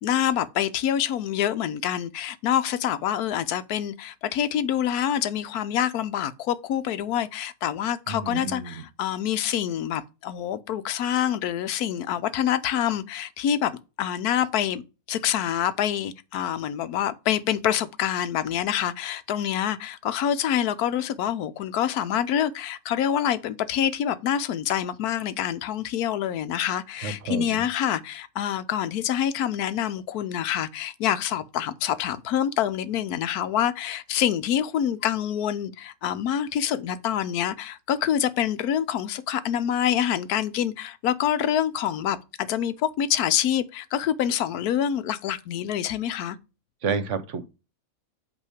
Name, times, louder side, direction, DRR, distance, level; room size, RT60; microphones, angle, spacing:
voice 1, 0.0-14.8 15.1-46.4, left 10 dB, 90° left, 1.2 m, -26 dB
voice 2, 8.1-8.8 27.0-27.7 46.8-47.5, right 5 dB, 60° right, 1.1 m, -30 dB
8.3 x 3.1 x 4.9 m
omnidirectional pair, 1.6 m